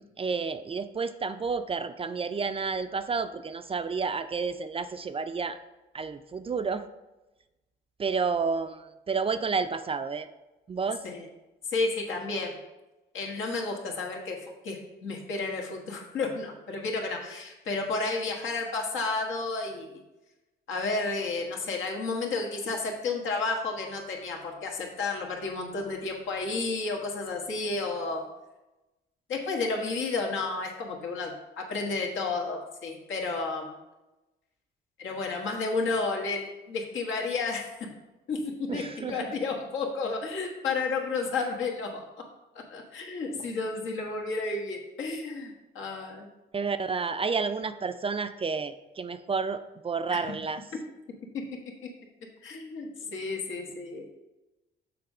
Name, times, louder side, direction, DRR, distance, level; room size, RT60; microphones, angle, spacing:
voice 1, 0.0-5.6 5.9-6.8 8.0-10.3 10.7-11.0 38.7-39.2 46.5-50.6, right 5 dB, 30° right, 10 dB, 0.4 m, -30 dB
voice 2, 11.7-12.6 13.1-20.0 20.7-28.3 29.3-33.8 35.0-37.9 38.3-42.1 42.5-46.3 50.1-50.2 51.3-51.4 52.4-54.1, left 3 dB, 75° left, 0 dB, 1.4 m, -32 dB
6.7 x 3.6 x 5.4 m, 1.0 s
cardioid pair, 90°, 20 cm